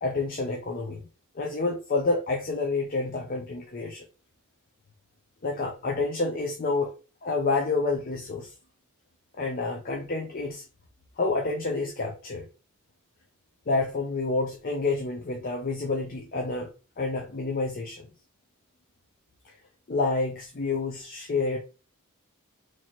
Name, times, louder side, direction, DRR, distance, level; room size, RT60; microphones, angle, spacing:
voice 1, 0.0-1.0 1.3-4.0 5.4-6.9 7.2-8.5 9.4-10.6 11.2-12.5 13.7-16.7 17.0-18.1 19.4-19.5 19.9-21.6, left 3 dB, 40° left, 2 dB, 0.6 m, -28 dB
3.0 x 2.9 x 4.3 m, 0.33 s
head